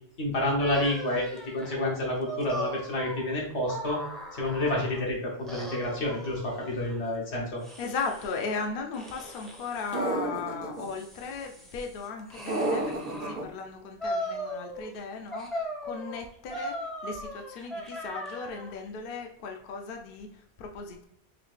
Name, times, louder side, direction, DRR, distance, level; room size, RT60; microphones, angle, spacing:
voice 1, 0.2-4.0 4.3-7.6, left 1 dB, 90° left, -2 dB, 1.5 m, -29 dB
sound 1, 0.6-5.1 5.5-7.0 7.6-8.5 8.9-9.9 10.5-13.4 14.0-15.0 15.3-18.8, equal, ahead, 0.5 m, -38 dB
voice 2, 7.8-21.0, left 4 dB, 65° left, 3 dB, 0.7 m, -37 dB
sound 2, 9.9-10.8 12.5-13.4, right 2 dB, 60° right, 1.0 m, -30 dB
4.0 x 2.7 x 3.1 m, 0.71 s
omnidirectional pair, 1.1 m